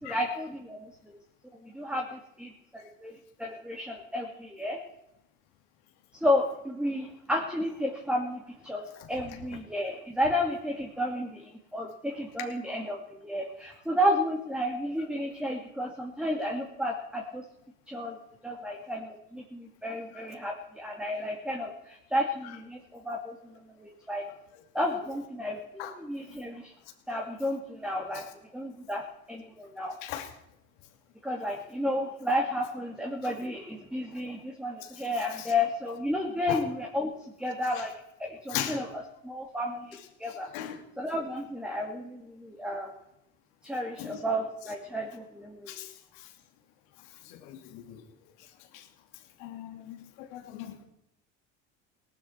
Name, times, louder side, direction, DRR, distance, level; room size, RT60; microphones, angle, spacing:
voice 1, 0.0-0.9 1.6-3.1 3.4-4.8 6.1-17.4 17.9-18.2 18.4-23.4 23.7-24.2 24.7-26.7 27.1-30.0 31.2-37.1 37.4-37.9 38.2-40.5 41.0-42.9 43.6-45.8, left 1 dB, 5° right, 0 dB, 2.5 m, -32 dB
voice 2, 47.3-48.0 48.7-48.8 49.4-50.8, left 11 dB, 80° left, 4 dB, 2.8 m, -37 dB
18.5 x 12.5 x 4.6 m, 0.81 s
supercardioid pair, 110°, 30 cm